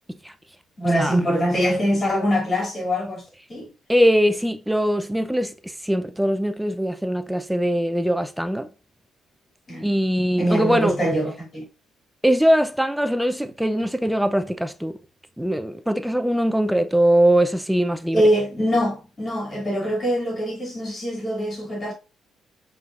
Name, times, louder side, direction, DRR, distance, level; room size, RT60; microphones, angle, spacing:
voice 1, 0.8-3.2 3.5-3.7 9.7-9.9 10.4-11.7 18.1-21.9, equal, 35° left, 2.6 m, -23 dB
voice 2, 3.9-8.7 9.8-11.0 12.2-14.9 15.4-18.2, equal, 5° right, 0.5 m, -21 dB
5.2 x 3.5 x 2.4 m
cardioid pair, 90°, 0 cm